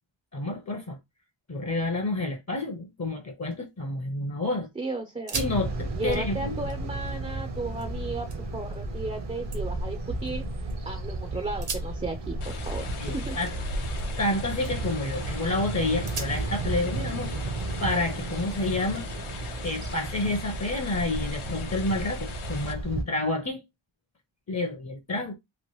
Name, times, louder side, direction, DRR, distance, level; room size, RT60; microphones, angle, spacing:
voice 1, 0.3-1.0 1.5-4.7 5.3-6.5 13.0-13.5 14.2-17.3 17.8-19.0 19.6-23.6 24.5-25.3, left 2 dB, 35° left, 0.6 m, -29 dB
sound 1, 3.3-4.3 4.6-4.7 5.1-5.6 5.9-7.9 8.3-8.8 9.2-10.8 11.5-14.3 14.6-15.0 15.5-15.6 16.1-18.3 19.0-20.1, right 4 dB, 85° right, 1.3 m, -42 dB
voice 2, 4.8-5.4 5.9-10.4 10.9-13.4, right 2 dB, 15° right, 0.4 m, -35 dB
sound 2, 5.3-23.0, right 2 dB, 55° right, 0.7 m, -33 dB
sound 3, 12.4-22.7, left 6 dB, 80° left, 0.7 m, -41 dB
3.1 x 2.5 x 2.9 m
wide cardioid pair, 90°, 49 cm